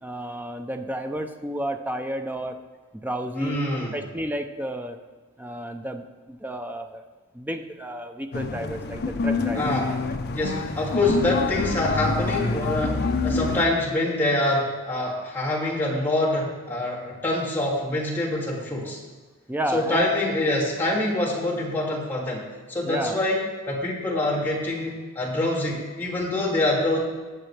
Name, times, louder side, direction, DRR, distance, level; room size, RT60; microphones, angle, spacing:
voice 1, 0.0-2.6 2.9-3.6 3.9-5.0 5.4-7.0 7.3-9.7 19.5-20.1 22.9-23.2, right 1 dB, 10° right, 6 dB, 0.5 m, -31 dB
voice 2, 3.4-3.9 9.5-9.9 10.3-19.0 19.7-22.4 22.7-27.0, left 1 dB, 10° left, -7 dB, 2.4 m, -25 dB
sound 1, 8.3-13.6, left 3 dB, 45° left, 0.6 m, -27 dB
19.5 x 6.7 x 3.3 m, 1.3 s
head